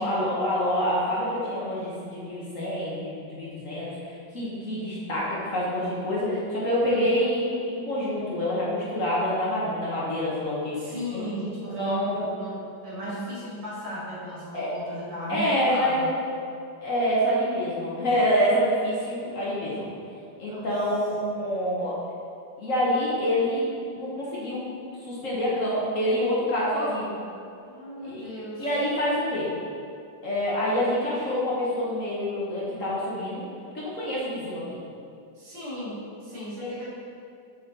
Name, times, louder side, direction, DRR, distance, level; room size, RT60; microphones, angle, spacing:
voice 1, 0.0-11.2 11.8-12.3 14.5-14.7 15.3-16.2 16.8-19.9 20.4-21.9 22.6-23.7 23.9-24.6 25.1-27.1 28.0-28.2 28.6-29.5 30.2-33.4 33.7-34.8 36.6-36.7, equal, 45° left, -6 dB, 1.5 m, -27 dB
voice 2, 10.7-16.1 20.5-20.7 21.2-21.3 27.7-28.7 35.4-36.9, equal, 70° right, -8 dB, 2.6 m, -35 dB
7.0 x 5.2 x 4.0 m, 2.5 s
omnidirectional pair, 2.0 m